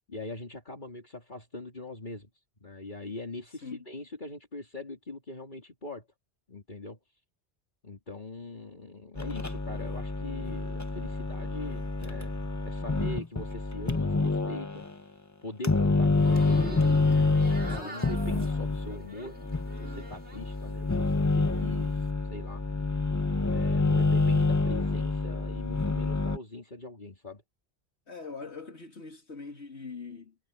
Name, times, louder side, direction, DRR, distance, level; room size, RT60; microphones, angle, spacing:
voice 1, 0.1-2.3 2.6-6.1 6.5-7.0 7.8-12.4 12.7-15.1 15.4-17.0 17.6-19.4 19.8-22.6 23.5-27.4, left 2 dB, 45° left, 3.4 m, -42 dB
sound 1, 9.2-14.9 15.6-26.4, left 3 dB, 15° left, 0.8 m, -27 dB
sound 2, 16.1-20.6 20.9-21.7, right 3 dB, 85° right, 4.5 m, -44 dB
voice 2, 28.1-30.4, left 4 dB, 80° left, 2.7 m, -42 dB
omnidirectional pair, 1.1 m